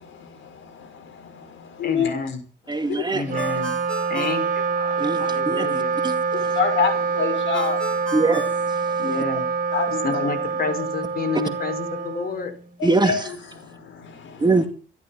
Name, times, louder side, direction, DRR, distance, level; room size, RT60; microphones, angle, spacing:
voice 1, 1.8-2.4 3.1-3.8 4.1-6.0 9.0-9.5 10.0-12.5, left 4 dB, 50° left, 4.9 m, -29 dB
voice 2, 2.7-3.2 5.0-6.2 8.1-8.6 12.8-13.3 14.4-14.6, right 3 dB, 20° right, 2.3 m, -22 dB
Wind instrument woodwind instrument, 3.2-12.8, right 5 dB, 45° right, 3.6 m, -25 dB
Ringtone, 3.4-5.3 7.5-9.5, left 1 dB, 5° left, 2.5 m, -36 dB
voice 3, 6.6-7.8 9.7-9.8 10.1-10.3 12.8-13.3, left 6 dB, 75° left, 6.4 m, -24 dB
14.0 x 12.0 x 7.2 m
cardioid pair, 90°, 20 cm